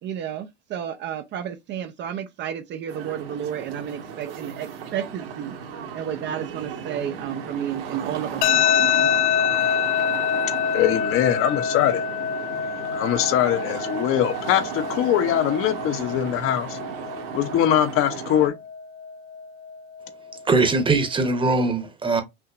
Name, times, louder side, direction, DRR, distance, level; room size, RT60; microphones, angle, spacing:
voice 1, 0.0-5.6 5.9-9.1, right 9 dB, 35° right, 0.6 m, -31 dB
sound 1, 2.9-18.5, right 7 dB, 60° right, 1.7 m, -35 dB
sound 2, 8.4-21.4, left 9 dB, 75° left, 0.8 m, -27 dB
voice 2, 10.7-12.0 12.9-16.8 17.3-18.5, left 11 dB, 40° left, 0.8 m, -22 dB
voice 3, 20.5-22.2, right 3 dB, 15° right, 1.1 m, -21 dB
5.8 x 2.8 x 2.5 m
hypercardioid pair, 95°, 34 cm